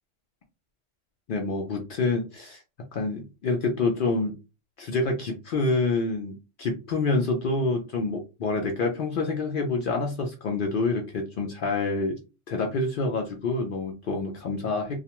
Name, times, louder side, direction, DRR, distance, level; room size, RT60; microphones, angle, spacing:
voice 1, 1.3-2.6 2.9-4.3 4.8-12.2 12.5-15.0, left 3 dB, 60° left, 2 dB, 0.6 m, -27 dB
2.3 x 2.1 x 2.8 m, 0.29 s
omnidirectional pair, 1.3 m